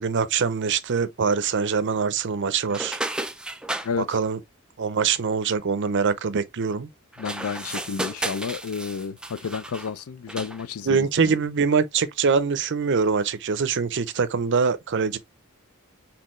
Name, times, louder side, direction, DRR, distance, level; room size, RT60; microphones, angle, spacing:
voice 1, 0.0-3.0 4.0-4.4 4.8-6.9 10.8-15.2, right 5 dB, 55° right, 0.5 m, -23 dB
sound 1, 2.7-3.9 7.1-9.9 10.3-10.6, right 1 dB, 5° right, 0.3 m, -33 dB
voice 2, 7.2-11.1, left 5 dB, 70° left, 0.5 m, -31 dB
4.4 x 3.9 x 3.0 m
head